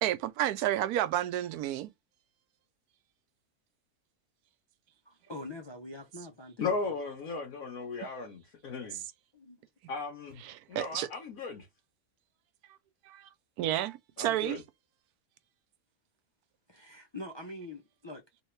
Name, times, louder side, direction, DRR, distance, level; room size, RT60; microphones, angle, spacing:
voice 1, 0.0-1.9 10.4-11.1 13.1-13.3 13.6-14.6, right 13 dB, 85° right, 1.1 m, -31 dB
voice 2, 5.0-6.8 9.3-9.6 16.7-18.4, left 1 dB, 40° left, 0.4 m, -44 dB
voice 3, 6.6-9.0 9.9-10.4 10.7-11.7 14.2-14.6, left 4 dB, 70° left, 1.4 m, -36 dB
3.5 x 2.9 x 3.2 m
omnidirectional pair, 1.6 m